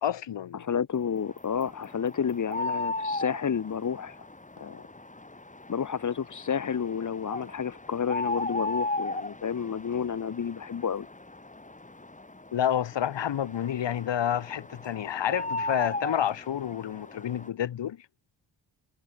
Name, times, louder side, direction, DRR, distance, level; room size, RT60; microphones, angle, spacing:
voice 1, 0.0-0.6 12.5-18.0, left 10 dB, 70° left, 2.0 m, -29 dB
voice 2, 0.5-4.2 4.6-4.8 5.7-11.1, left 7 dB, 40° left, 1.3 m, -30 dB
sound 1, 1.2-17.5, left 2 dB, 15° left, 3.1 m, -37 dB
cardioid pair, 60°, 45 cm